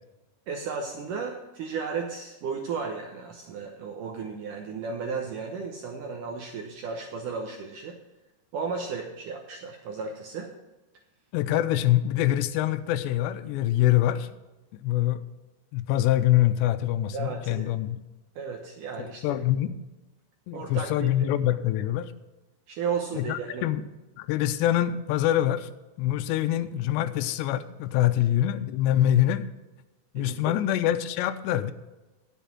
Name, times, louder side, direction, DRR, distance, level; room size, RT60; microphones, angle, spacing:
voice 1, 0.5-8.0 8.5-10.5 17.1-17.8 18.4-19.4 20.5-21.3 22.7-23.7 30.2-30.5, right 5 dB, 75° right, 1 dB, 1.9 m, -34 dB
voice 2, 11.3-14.3 14.8-15.2 15.7-18.0 19.0-19.8 20.5-22.1 23.1-23.8 24.2-25.7 26.0-29.5 30.1-31.7, left 13 dB, 90° left, 12 dB, 2.8 m, -25 dB
10.5 x 7.4 x 6.0 m, 1.1 s
omnidirectional pair, 4.9 m